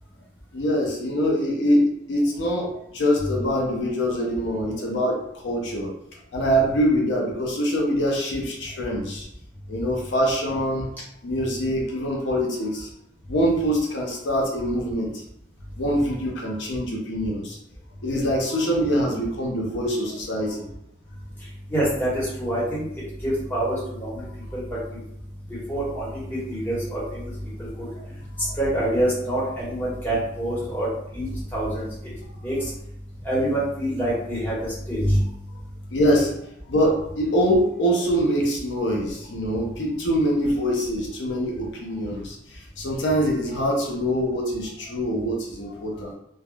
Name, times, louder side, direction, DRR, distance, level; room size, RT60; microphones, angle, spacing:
voice 1, 0.5-5.9 6.3-9.3 9.7-10.9 11.2-12.9 13.3-15.2 15.8-17.6 18.0-20.7 28.4-28.5 35.9-36.4 36.7-46.1, equal, 75° left, -1 dB, 0.6 m, -24 dB
voice 2, 21.7-22.9 23.2-24.2 24.5-24.6 24.9-25.0 25.7-27.3 27.6-27.9 28.6-30.9 31.1-31.9 32.4-32.7 33.2-35.3, right 1 dB, 10° left, -8 dB, 1.0 m, -26 dB
3.3 x 2.1 x 2.2 m, 0.77 s
head